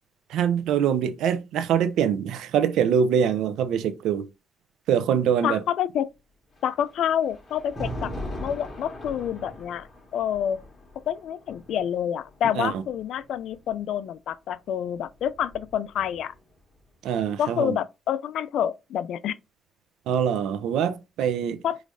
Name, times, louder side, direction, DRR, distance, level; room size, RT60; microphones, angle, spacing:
voice 1, 0.3-4.3 4.9-5.6 12.5-12.8 17.0-17.8 20.1-21.6, right 8 dB, 85° right, 0.6 m, -24 dB
voice 2, 5.4-6.1 6.6-8.1 8.4-9.9 10.1-10.6 11.1-16.3 17.4-19.4 21.6-21.8, left 9 dB, 75° left, 0.4 m, -28 dB
Thunder, 6.5-13.7 14.8-16.5, equal, 35° left, 2.2 m, -40 dB
4.9 x 3.2 x 2.6 m
cardioid pair, 90°, 0 cm